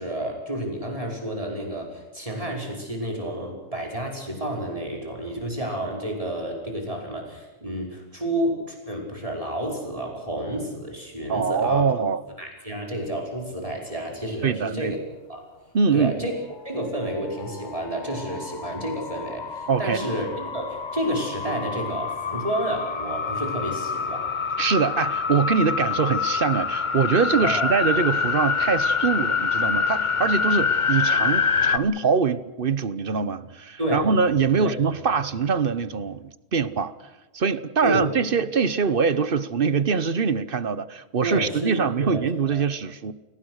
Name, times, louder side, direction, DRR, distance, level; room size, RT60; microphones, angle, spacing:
voice 1, 0.0-11.9 12.4-15.0 15.3-15.4 15.9-16.3 16.6-24.3 27.4-27.7 33.8-34.1 34.6-34.7 37.8-38.0 41.2-42.6, right 1 dB, 30° right, 5.5 m, -30 dB
voice 2, 11.3-12.2 14.4-14.9 15.7-16.3 19.7-20.0 24.6-36.9 37.3-43.1, right 5 dB, 55° right, 1.1 m, -23 dB
sound 1, 17.3-31.8, left 5 dB, 45° left, 1.1 m, -26 dB
29.0 x 17.5 x 6.5 m
omnidirectional pair, 1.1 m